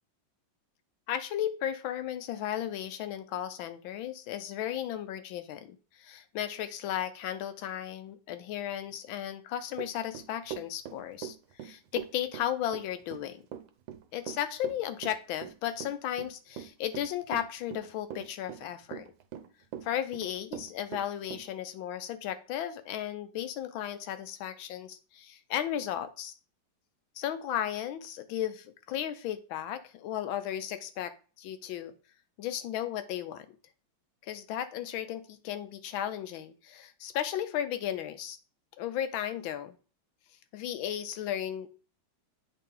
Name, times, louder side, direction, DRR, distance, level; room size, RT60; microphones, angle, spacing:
voice 1, 1.1-11.4 11.6-13.4 14.1-19.0 19.8-26.3 27.2-31.1 31.4-31.9 32.4-33.5 34.2-38.4 38.8-39.8 40.5-41.7, left 11 dB, 80° left, 11 dB, 1.5 m, -35 dB
Run / Walk footsteps, 9.7-21.5, right 10 dB, 80° right, 1.5 m, -41 dB
8.3 x 3.9 x 3.8 m, 0.37 s
omnidirectional pair, 2.2 m